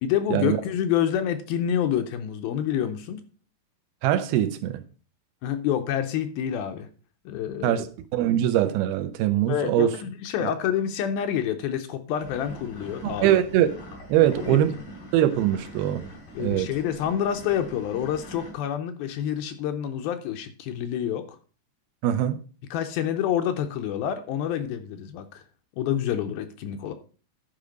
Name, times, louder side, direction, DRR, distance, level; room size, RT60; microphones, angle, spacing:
voice 1, 0.0-3.2 5.4-6.9 7.3-7.8 9.5-13.4 14.2-14.6 16.4-21.2 22.7-25.4 25.8-26.9, left 9 dB, 80° left, 2.4 m, -28 dB
voice 2, 4.0-4.8 7.6-7.9 8.1-10.0 10.4-10.5 13.0-13.7 14.1-14.7 15.1-16.1 16.4-16.7 22.0-22.4, right 12 dB, 80° right, 2.4 m, -22 dB
sound 1, 12.2-18.5, right 1 dB, 50° left, 4.7 m, -42 dB
11.0 x 5.1 x 5.1 m
omnidirectional pair, 4.7 m